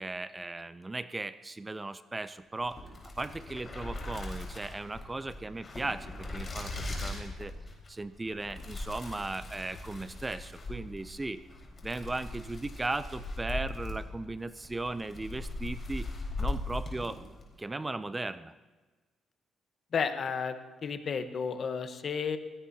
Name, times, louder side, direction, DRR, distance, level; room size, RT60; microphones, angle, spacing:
voice 1, 0.0-2.8 3.2-7.5 7.9-11.4 11.8-16.1 16.4-17.2 17.6-18.5, right 2 dB, 20° right, 14 dB, 0.5 m, -37 dB
sound 1, 2.6-17.5, left 2 dB, 35° left, 4.5 m, -39 dB
voice 2, 19.9-20.6 20.8-22.4, left 6 dB, 50° left, 9 dB, 1.1 m, -32 dB
20.0 x 17.0 x 2.8 m, 1.3 s
cardioid pair, 90°, 0 cm